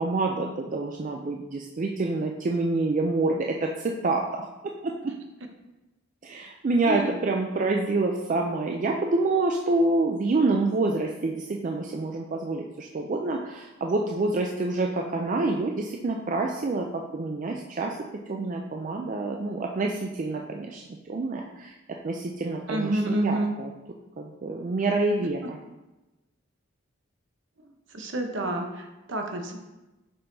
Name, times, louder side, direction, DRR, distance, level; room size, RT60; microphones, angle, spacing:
voice 1, 0.0-4.5 4.8-5.2 6.2-18.0 18.3-21.7 22.0-23.7 24.2-25.6, right 3 dB, 40° right, 1 dB, 0.4 m, -27 dB
voice 2, 22.7-23.5 27.9-29.6, right 1 dB, 60° right, 4 dB, 0.9 m, -28 dB
6.7 x 5.6 x 2.7 m, 1.0 s
head